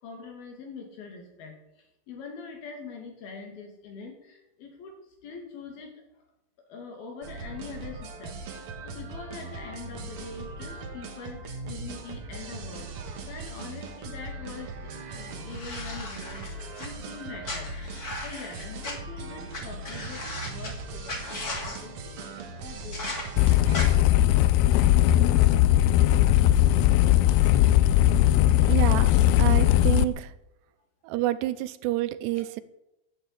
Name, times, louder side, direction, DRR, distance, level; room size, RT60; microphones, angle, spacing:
voice 1, 0.0-6.0 6.6-12.9 13.3-16.5 16.8-17.8 18.2-22.3 22.6-23.2 32.4-32.5, left 5 dB, 65° left, 3 dB, 4.3 m, -43 dB
sound 1, 7.2-23.9, right 3 dB, 60° right, 1.5 m, -39 dB
sound 2, 15.5-16.9 17.4-18.9 19.5-19.6 19.8-20.7 21.1-21.8 22.9-23.2 23.7-23.9, left 2 dB, 30° left, 2.1 m, -36 dB
sound 3, 23.4-30.0, left 13 dB, 80° left, 2.4 m, -19 dB
voice 2, 28.7-29.1 29.4-30.3 31.0-32.6, right 16 dB, 90° right, 15 dB, 2.8 m, -28 dB
11.0 x 9.4 x 8.3 m, 0.91 s
omnidirectional pair, 4.8 m